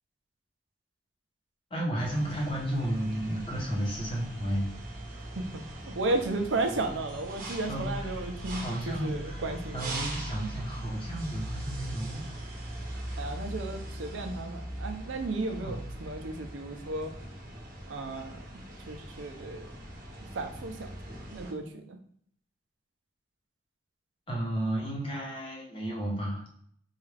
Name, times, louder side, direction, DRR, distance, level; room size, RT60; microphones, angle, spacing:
voice 1, 1.7-4.7 7.7-8.2 8.5-9.4 9.7-12.2 15.6-15.8 24.3-26.5, right 1 dB, 30° left, -2 dB, 0.8 m, -33 dB
sound 1, 2.0-21.5, right 1 dB, 45° right, 0.8 m, -40 dB
voice 2, 5.9-9.9 13.2-17.1 17.9-18.6 18.9-19.7 20.4-20.9 21.3-22.0, right 2 dB, 90° right, 5 dB, 0.5 m, -34 dB
3.5 x 2.4 x 3.3 m, 0.64 s
head